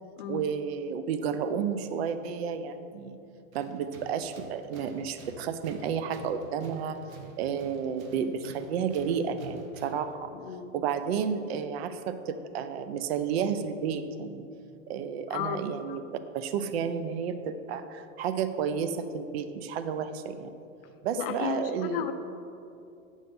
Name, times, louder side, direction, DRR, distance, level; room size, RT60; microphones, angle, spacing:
voice 1, 0.3-3.2 3.5-7.0 7.4-10.3 10.7-14.4 14.9-16.0 16.3-20.5 21.0-22.1, right 7 dB, 50° right, 10 dB, 0.5 m, -31 dB
Tools, 3.5-10.1, right 4 dB, 70° right, 1.2 m, -48 dB
voice 2, 10.3-10.7 15.3-15.6 15.9-16.0 21.2-22.1, left 9 dB, 40° left, 7 dB, 0.6 m, -33 dB
8.6 x 6.2 x 5.3 m, 2.6 s
supercardioid pair, 170°, 42 cm